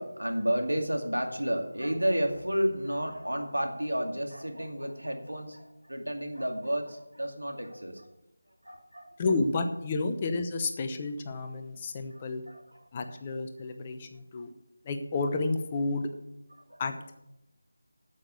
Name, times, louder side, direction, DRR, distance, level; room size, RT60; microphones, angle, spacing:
voice 1, 0.0-8.1 8.6-9.1 12.1-12.8 16.7-16.8, equal, 85° right, 4 dB, 2.3 m, -31 dB
voice 2, 9.2-12.4 12.9-14.5 14.8-16.1 16.8-17.1, left 3 dB, 20° left, 6 dB, 0.8 m, -31 dB
8.7 x 8.1 x 8.1 m, 0.88 s
figure-of-eight pair, 165°, 0 cm